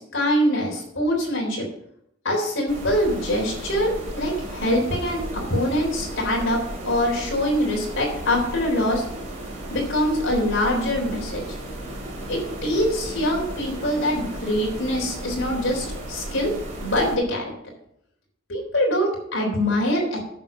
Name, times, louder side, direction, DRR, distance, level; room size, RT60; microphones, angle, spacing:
voice 1, 0.0-1.7 2.2-9.1 9.7-11.6 12.3-16.5 16.8-17.4 18.5-20.2, left 1 dB, 65° left, 0 dB, 3.7 m, -24 dB
sound 1, 2.7-17.2, right 1 dB, 40° right, 3.0 m, -34 dB
9.0 x 7.1 x 5.9 m, 0.75 s
head